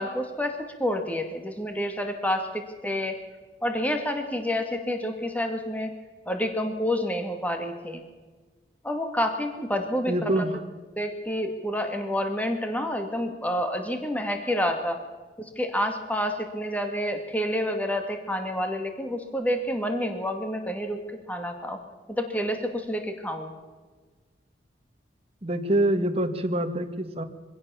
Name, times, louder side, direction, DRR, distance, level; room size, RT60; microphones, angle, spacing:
voice 1, 0.0-3.2 3.6-5.9 6.3-8.0 8.8-10.4 11.0-15.0 15.4-21.0 21.3-21.8 22.1-23.5, equal, 10° left, 5 dB, 2.2 m, -28 dB
voice 2, 10.1-10.6 25.4-27.2, right 1 dB, 35° right, 7 dB, 1.8 m, -25 dB
24.0 x 16.5 x 7.1 m, 1.4 s
head